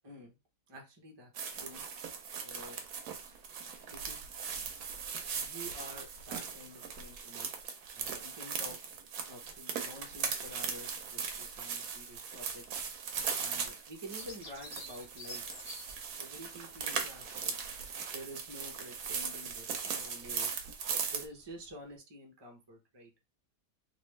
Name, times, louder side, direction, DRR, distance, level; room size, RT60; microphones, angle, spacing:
voice 1, 0.0-0.4 0.7-1.8 2.4-2.8 3.9-4.2 5.3-7.5 7.9-8.8 9.3-12.8 13.3-15.4 16.2-17.6 18.1-20.6 21.1-23.1, equal, 20° right, 1 dB, 0.7 m, -49 dB
sound 1, 1.4-21.3, right 6 dB, 75° right, 1.2 m, -39 dB
Bird vocalization bird call bird song, 14.1-22.0, left 2 dB, 40° left, 1.3 m, -53 dB
3.4 x 2.6 x 3.2 m, 0.26 s
omnidirectional pair, 1.7 m